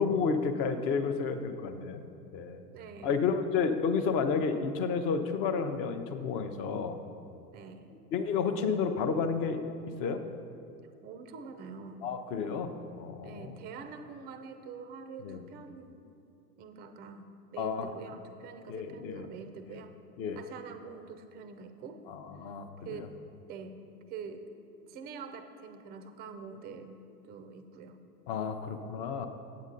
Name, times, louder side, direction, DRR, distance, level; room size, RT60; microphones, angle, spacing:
voice 1, 0.0-2.0 2.3-2.6 3.0-7.0 8.1-9.7 10.0-10.2 12.0-13.5 15.2-15.4 17.6-17.9 18.7-19.3 20.2-20.4 22.1-23.1 28.3-29.3, left 5 dB, 30° left, 8 dB, 0.6 m, -31 dB
voice 2, 2.7-3.3 7.5-8.0 11.0-12.1 13.2-16.0 16.6-20.0 20.4-22.1 22.8-23.1 23.5-23.8 24.1-24.5 24.9-27.0 27.3-28.0, right 5 dB, 20° right, 8 dB, 0.4 m, -45 dB
8.4 x 8.1 x 3.8 m, 2.7 s
hypercardioid pair, 95°, 46 cm